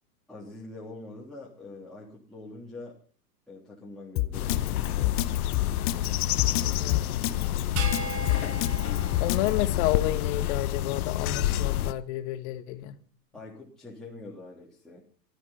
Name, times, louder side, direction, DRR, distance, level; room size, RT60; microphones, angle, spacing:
voice 1, 0.3-3.0 3.5-5.3 13.3-15.0, left 2 dB, ahead, 3.4 m, -44 dB
Drum kit, 4.2-9.5, left 17 dB, 25° left, 0.8 m, -27 dB
sound 1, 4.3-11.9, left 13 dB, 60° left, 1.0 m, -28 dB
voice 2, 6.8-7.3 9.2-13.0, left 14 dB, 45° left, 1.5 m, -30 dB
sound 2, 7.8-10.3, right 5 dB, 50° right, 3.4 m, -38 dB
15.5 x 13.0 x 5.7 m
hypercardioid pair, 120°, 49 cm